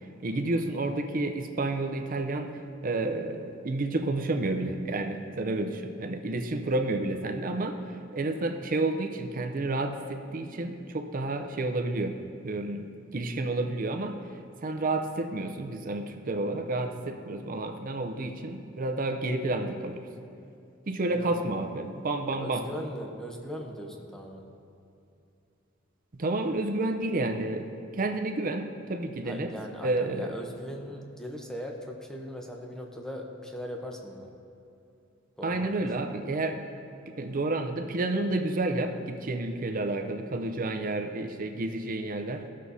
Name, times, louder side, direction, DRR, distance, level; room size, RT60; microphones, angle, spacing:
voice 1, 0.2-2.5 2.8-7.8 8.1-12.2 12.4-12.8 13.1-14.2 14.6-20.1 20.9-22.6 26.1-27.7 27.9-29.5 29.8-30.4 35.4-36.7 37.2-42.5, right 2 dB, 45° right, 6 dB, 0.6 m, -30 dB
voice 2, 22.4-24.5 29.2-34.3 35.4-35.8, equal, 5° left, 1 dB, 0.8 m, -39 dB
15.5 x 6.3 x 2.7 m, 2.6 s
head